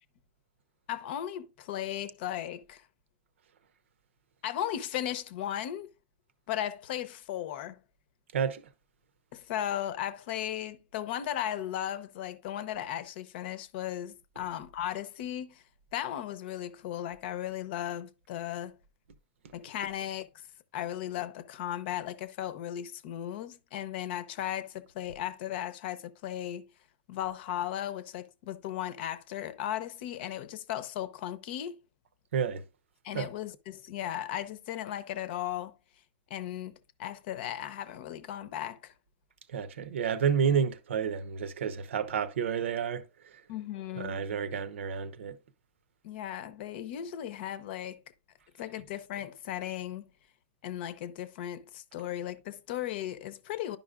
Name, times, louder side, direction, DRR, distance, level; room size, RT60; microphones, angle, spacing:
voice 1, 0.9-2.8 4.4-5.9 6.5-7.8 9.3-15.6 15.9-18.8 19.5-20.3 20.7-26.7 27.1-31.8 33.0-35.8 36.3-38.9 43.5-44.2 46.0-48.0 48.6-50.1 50.6-53.8, left 11 dB, 60° left, 0.7 m, -36 dB
voice 2, 39.5-43.0 44.0-45.4, right 7 dB, 85° right, 0.8 m, -30 dB
10.5 x 5.3 x 2.4 m
hypercardioid pair, 140°, 6 cm